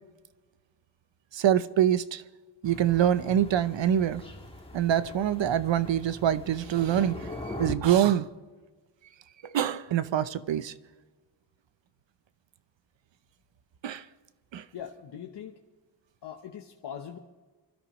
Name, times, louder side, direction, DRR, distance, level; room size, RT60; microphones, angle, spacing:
voice 1, 1.3-2.2 2.6-4.2 4.7-8.3 9.5-10.7 13.8-14.0 14.5-14.6, right 10 dB, 80° right, 0.8 m, -25 dB
Thunder, 2.6-7.7, left 2 dB, 10° left, 1.5 m, -41 dB
voice 2, 14.7-15.6 16.2-17.2, left 8 dB, 65° left, 1.0 m, -41 dB
29.0 x 13.0 x 3.1 m
wide cardioid pair, 175°, 44 cm